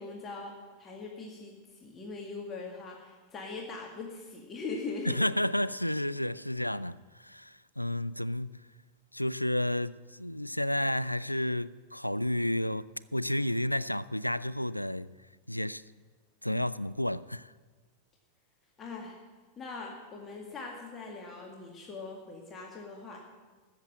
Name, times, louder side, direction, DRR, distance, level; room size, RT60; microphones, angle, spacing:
voice 1, 0.0-5.2 18.8-19.2 19.6-23.2, left 3 dB, 25° left, 1.9 m, -41 dB
voice 2, 5.0-8.6 9.1-15.1 15.5-15.8 16.4-17.5, left 1 dB, 90° left, 0.3 m, -31 dB
13.5 x 7.6 x 7.7 m
figure-of-eight pair, 90°, 0 cm